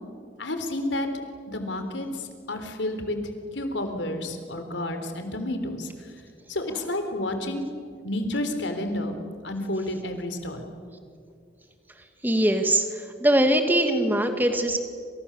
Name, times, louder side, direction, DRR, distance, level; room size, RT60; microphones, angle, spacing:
voice 1, 0.4-1.1 1.5-2.2 2.5-5.9 6.5-7.7 8.0-9.2 9.4-10.7, left 1 dB, 80° left, 7 dB, 3.7 m, -30 dB
voice 2, 12.2-12.8 13.2-14.8, right 1 dB, 10° right, 6 dB, 2.2 m, -21 dB
28.5 x 27.5 x 7.3 m, 2.2 s
head